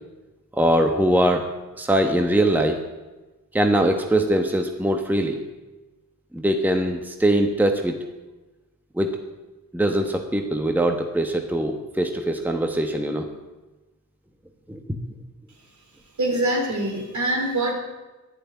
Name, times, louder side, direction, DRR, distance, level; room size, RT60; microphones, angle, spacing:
voice 1, 0.6-1.5 1.8-2.8 3.5-5.4 6.3-7.9 8.9-9.2 9.7-13.3 14.7-14.8, right 1 dB, 5° right, 4 dB, 1.2 m, -22 dB
voice 2, 16.2-17.7, right 1 dB, 60° right, 2 dB, 3.6 m, -24 dB
11.5 x 11.0 x 9.3 m, 1.1 s
wide cardioid pair, 135°, 33 cm